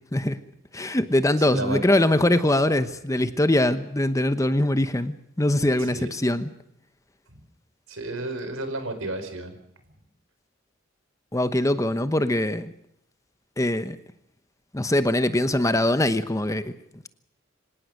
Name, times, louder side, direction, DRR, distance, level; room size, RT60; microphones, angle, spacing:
voice 1, 0.7-6.5 11.3-12.7 13.6-14.0 14.7-16.6, left 1 dB, 15° left, 11 dB, 1.0 m, -22 dB
voice 2, 1.5-1.8 5.9-6.1 7.9-9.6, right 2 dB, 85° right, 8 dB, 4.6 m, -31 dB
25.5 x 18.0 x 6.6 m, 0.75 s
head